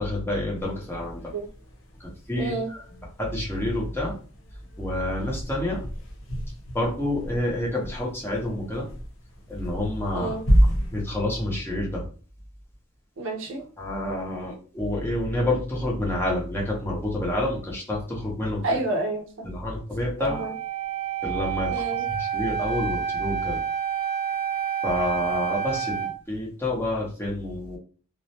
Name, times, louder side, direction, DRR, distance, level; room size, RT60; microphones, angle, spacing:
voice 1, 0.0-1.2 2.0-2.8 3.2-4.1 4.8-5.8 6.7-8.9 9.5-10.4 10.9-12.0 13.8-18.8 19.4-20.4 21.2-21.7 22.2-23.6 24.8-27.8, left 1 dB, 10° left, -3 dB, 0.7 m, -28 dB
sound 1, 0.6-11.0, equal, 70° left, 0.7 m, -30 dB
voice 2, 2.4-2.7 10.1-10.4 13.2-13.6 18.6-19.5 20.2-20.5 21.7-22.0, right 2 dB, 70° right, 2 dB, 0.6 m, -29 dB
Wind instrument woodwind instrument, 20.2-26.1, right 8 dB, 30° right, 0.8 m, -29 dB
2.4 x 2.0 x 2.8 m, 0.40 s
head